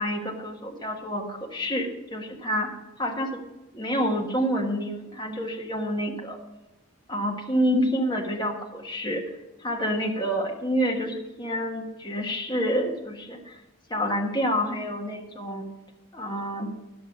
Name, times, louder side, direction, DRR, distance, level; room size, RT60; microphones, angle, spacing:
voice 1, 0.0-2.7 3.0-3.4 3.7-6.4 7.1-9.2 9.6-13.5 13.9-15.7 16.1-16.7, equal, 20° left, 0 dB, 1.4 m, -28 dB
11.0 x 6.8 x 6.0 m, 0.99 s
head